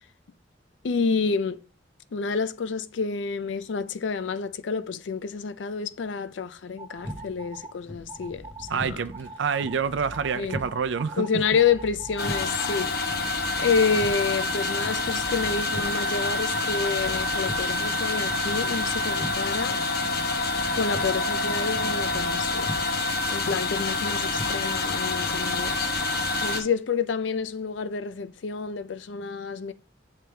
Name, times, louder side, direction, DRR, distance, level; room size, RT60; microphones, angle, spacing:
voice 1, 0.8-1.6 2.1-9.0 10.3-10.6 11.2-13.0 13.6-19.8 20.7-22.7 23.3-25.9 26.4-29.7, left 5 dB, 75° left, 0.4 m, -28 dB
sound 1, 6.8-7.7 8.1-8.8 9.1-9.8 10.1-12.8, right 3 dB, 20° right, 0.6 m, -42 dB
sound 2, 7.0-26.0, left 1 dB, 10° left, 0.8 m, -42 dB
voice 2, 8.7-11.3, right 6 dB, 75° right, 0.4 m, -27 dB
sound 3, 12.2-26.6, left 3 dB, 55° left, 0.9 m, -27 dB
8.7 x 3.3 x 3.3 m
head